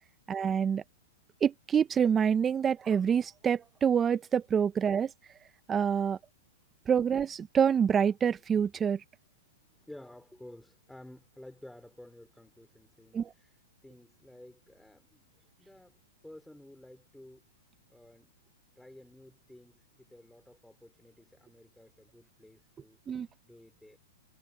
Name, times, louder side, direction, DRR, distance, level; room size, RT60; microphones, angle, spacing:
voice 1, 0.3-0.8 1.4-5.1 5.7-6.2 6.9-9.0 13.1-13.3 23.1-23.3, right 7 dB, 20° right, 1.1 m, -26 dB
voice 2, 9.9-15.3 15.6-16.0 16.2-17.4 17.9-18.3 18.7-23.0 23.4-24.0, left 1 dB, 5° left, 4.6 m, -53 dB
hypercardioid pair, 125°, 0 cm